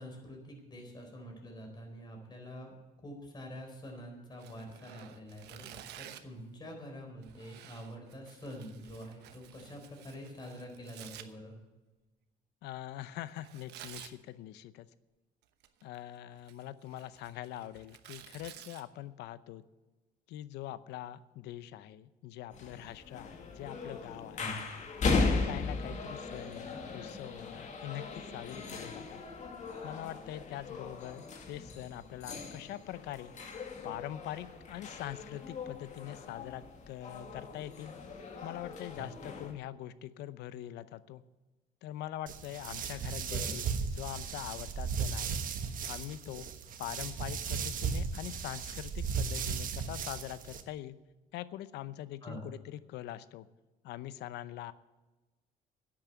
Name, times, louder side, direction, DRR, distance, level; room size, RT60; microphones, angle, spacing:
voice 1, 0.0-11.6 24.4-24.6 39.0-39.1 43.3-43.5 52.2-52.5, equal, 25° left, 2 dB, 4.2 m, -46 dB
Tearing, 4.4-6.4 7.2-11.3 13.4-14.1 15.4-16.0 16.3-18.8, right 11 dB, 80° right, 1.0 m, -52 dB
voice 2, 12.6-14.9 15.8-19.6 20.3-24.5 25.1-29.2 29.8-33.3 33.8-37.9 38.4-41.2 41.8-45.4 45.9-46.5 46.8-51.0 51.3-53.5 53.8-54.7, left 13 dB, 80° left, 15 dB, 0.7 m, -43 dB
sound 1, 22.5-39.5, left 3 dB, 45° left, 2.2 m, -38 dB
sound 2, 42.3-50.6, right 6 dB, 55° right, 1.2 m, -36 dB
11.0 x 8.8 x 8.7 m, 1.2 s
cardioid pair, 110°, 17 cm